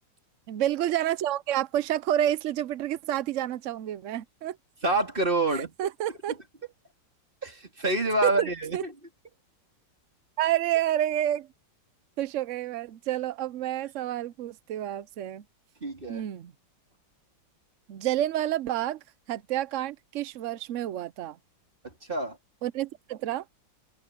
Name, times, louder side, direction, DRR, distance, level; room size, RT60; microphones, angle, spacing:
voice 1, 0.5-4.6 5.5-6.4 8.2-8.8 10.4-11.5 12.2-15.4 16.1-16.5 17.9-19.0 19.3-21.4 22.6-23.4, right 12 dB, 85° right, 0.6 m, -29 dB
voice 2, 4.8-5.7 7.4-8.9 15.8-16.2 21.8-22.4, right 2 dB, 25° right, 3.7 m, -27 dB
omnidirectional pair, 2.1 m